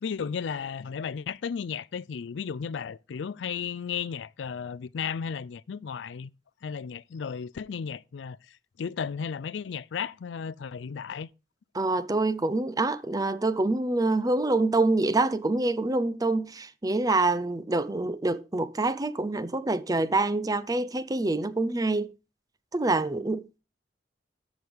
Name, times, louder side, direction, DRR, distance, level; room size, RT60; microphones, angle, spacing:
voice 1, 0.0-6.3 6.6-11.3, left 6 dB, 70° left, 0.4 m, -34 dB
voice 2, 11.7-22.1 22.7-23.6, right 2 dB, 20° right, 0.5 m, -26 dB
13.0 x 6.1 x 3.5 m
head